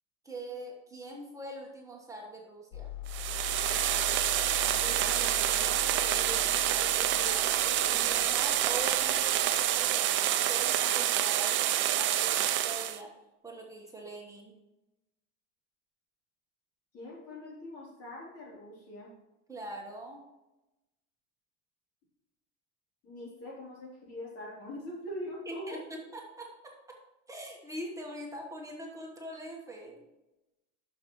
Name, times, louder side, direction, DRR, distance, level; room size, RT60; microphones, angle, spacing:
voice 1, 0.2-2.9 7.9-13.1 13.4-14.6 19.5-20.2 25.5-27.0 27.3-30.0, right 2 dB, 10° right, -1 dB, 1.2 m, -43 dB
sound 1, 2.7-10.8, left 11 dB, 65° left, 1.0 m, -43 dB
sound 2, 3.1-13.0, right 12 dB, 35° right, 0.5 m, -27 dB
voice 2, 4.8-8.3 16.9-19.1 23.0-25.8, left 1 dB, 45° left, -4 dB, 3.3 m, -43 dB
11.5 x 6.5 x 3.1 m, 0.99 s
cardioid pair, 155°, 33 cm